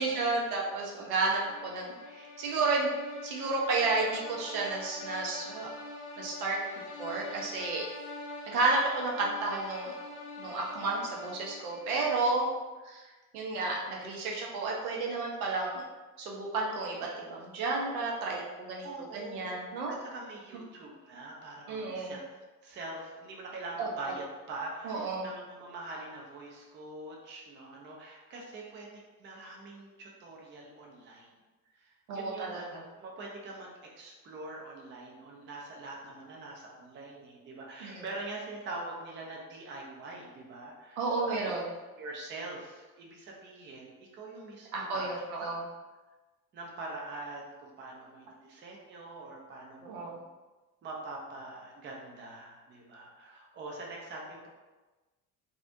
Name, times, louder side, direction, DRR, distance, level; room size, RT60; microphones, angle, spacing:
voice 1, 0.0-2.9 3.2-5.7 6.2-6.6 7.0-7.9 8.5-9.9 10.4-12.5 12.9-13.0 13.3-15.8 16.2-18.9 19.1-19.9 21.7-22.1 23.8-23.9 24.8-25.3 32.1-32.8 37.8-38.0 41.0-41.6 44.7-45.6 49.8-50.2, right 3 dB, 70° right, -2 dB, 0.6 m, -32 dB
sound 1, 1.1-12.1, left 3 dB, 45° left, 0.7 m, -45 dB
voice 2, 18.8-19.5 19.9-22.2 22.6-28.9 29.2-31.3 31.8-31.9 32.1-33.7 34.0-41.0 41.3-41.4 42.0-45.1 45.4-45.6 46.5-50.2 50.8-54.5, right 2 dB, 25° right, -2 dB, 0.5 m, -44 dB
2.4 x 2.0 x 2.6 m, 1.2 s
figure-of-eight pair, 55°, 45 cm